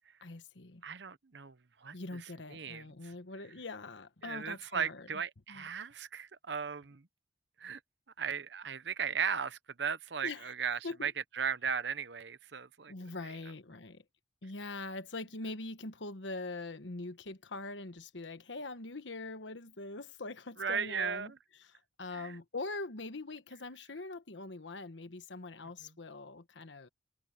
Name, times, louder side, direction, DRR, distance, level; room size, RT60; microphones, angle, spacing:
voice 1, 0.2-0.8 1.9-5.1 5.5-5.7 10.2-10.5 10.8-11.1 12.9-14.0 14.4-21.3 21.6-26.9, left 3 dB, 85° left, 1.3 m, -43 dB
voice 2, 0.8-2.2 2.5-2.8 4.2-7.1 7.6-7.8 8.2-12.9 20.6-21.3 22.1-22.3, right 6 dB, 70° right, 0.9 m, -36 dB
head